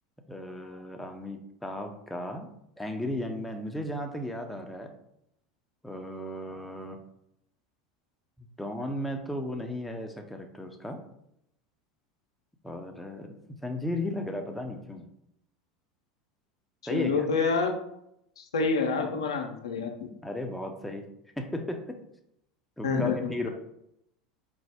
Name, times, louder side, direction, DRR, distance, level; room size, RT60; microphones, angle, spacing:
voice 1, 0.3-2.5 2.8-4.9 5.8-7.0 8.4-11.0 12.6-15.1 16.9-17.3 20.2-21.1 21.4-22.0 22.8-23.5, left 1 dB, 5° left, 4 dB, 0.5 m, -35 dB
voice 2, 16.9-17.8 18.4-20.1 22.8-23.2, left 4 dB, 80° left, 3 dB, 0.5 m, -27 dB
4.5 x 2.0 x 3.4 m, 0.77 s
figure-of-eight pair, 80°, 3 cm